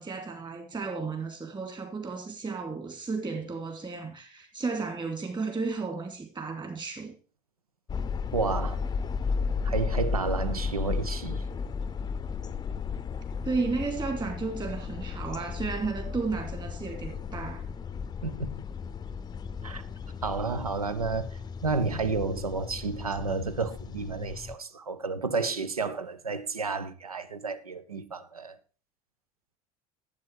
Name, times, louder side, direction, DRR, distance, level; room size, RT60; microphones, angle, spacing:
voice 1, 0.0-7.1 13.4-17.6, right 4 dB, 25° right, 2.5 m, -33 dB
sound 1, 7.9-24.6, left 5 dB, 20° left, 0.6 m, -34 dB
voice 2, 8.3-8.8 9.6-11.4 18.2-18.6 19.6-19.8 20.2-28.6, right 4 dB, 85° right, 0.6 m, -31 dB
11.5 x 8.2 x 4.5 m
figure-of-eight pair, 60°, 18 cm